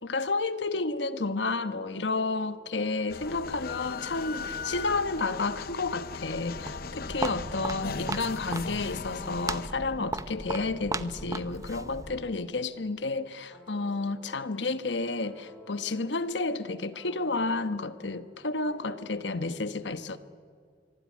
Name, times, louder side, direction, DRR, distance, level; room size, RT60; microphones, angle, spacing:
voice 1, 0.0-20.2, left 3 dB, 85° left, 1.1 m, -31 dB
sound 1, 1.3-6.0 13.5-19.1, left 2 dB, ahead, 6.4 m, -53 dB
sound 2, 3.1-9.7, left 5 dB, 55° left, 0.7 m, -38 dB
Walk footsteps, 6.2-12.4, right 2 dB, 20° right, 0.8 m, -37 dB
25.0 x 23.5 x 9.6 m
head